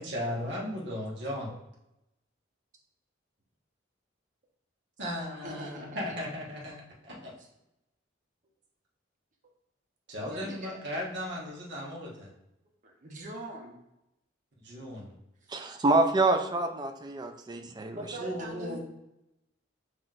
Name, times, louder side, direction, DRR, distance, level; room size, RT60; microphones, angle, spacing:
voice 1, 0.0-1.5 5.0-6.8 7.0-7.3 10.1-12.3 14.6-15.1 18.2-18.8, equal, 60° right, -4 dB, 1.3 m, -36 dB
voice 2, 5.4-6.2 7.4-7.5 10.2-10.8 12.8-13.8 15.4-15.6 17.5-18.8, right 1 dB, 40° right, 0 dB, 0.9 m, -42 dB
voice 3, 15.5-18.0, right 2 dB, 20° right, 6 dB, 0.4 m, -27 dB
5.7 x 3.1 x 2.5 m, 0.90 s
head